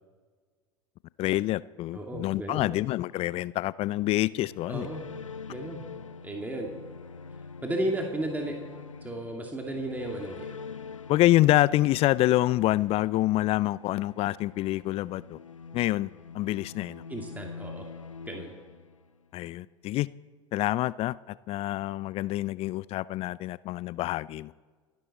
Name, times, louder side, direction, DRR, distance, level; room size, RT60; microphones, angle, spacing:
voice 1, 1.2-4.9 11.1-15.4 15.7-16.1 16.3-17.0 19.3-20.1 20.5-24.5, left 16 dB, 40° left, 20 dB, 0.4 m, -26 dB
voice 2, 1.9-2.7 4.7-5.0 5.5-5.8 6.2-6.7 7.6-8.6 9.0-10.5 17.1-17.9 18.3-18.5, right 1 dB, 10° right, 1 dB, 2.5 m, -34 dB
sound 1, 4.2-19.4, left 5 dB, 85° left, 0.6 m, -45 dB
28.0 x 11.0 x 4.3 m, 1.4 s
figure-of-eight pair, 80°, 16 cm